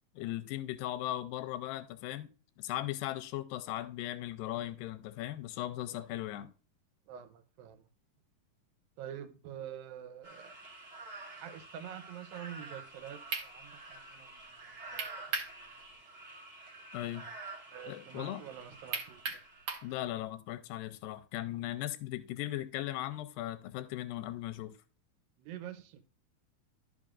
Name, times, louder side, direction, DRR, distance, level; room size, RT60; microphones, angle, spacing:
voice 1, 0.2-2.3 2.6-6.5 16.9-17.3 17.9-18.4 19.8-24.8, left 14 dB, 85° left, 2.3 m, -38 dB
voice 2, 7.1-7.9 9.0-10.6 11.3-15.3 15.6-15.7 17.7-19.4 25.4-26.0, right 9 dB, 85° right, 2.6 m, -47 dB
sound 1, 10.2-19.9, right 2 dB, 30° right, 1.3 m, -49 dB
sound 2, 12.9-13.0 13.3-13.5 15.0-15.5 15.9-16.0 18.9-19.9, right 5 dB, 55° right, 2.0 m, -36 dB
12.0 x 5.4 x 2.4 m
omnidirectional pair, 4.0 m